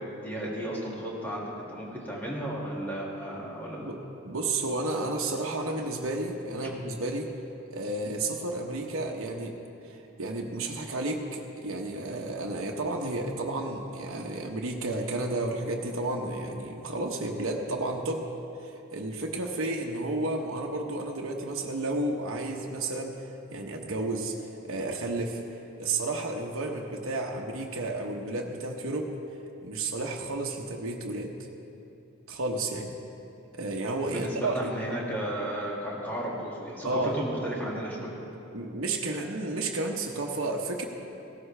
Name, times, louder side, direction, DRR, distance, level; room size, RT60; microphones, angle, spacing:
voice 1, 0.0-3.9 34.1-38.2, equal, 10° left, -5 dB, 2.2 m, -34 dB
voice 2, 4.2-7.3 7.7-9.5 9.8-18.2 18.6-23.2 23.5-24.3 24.6-25.4 25.8-29.1 29.6-31.3 32.3-32.9 33.5-34.6 36.8-37.1 38.5-40.9, right 2 dB, 80° right, 0 dB, 1.0 m, -32 dB
16.0 x 13.0 x 3.3 m, 2.8 s
head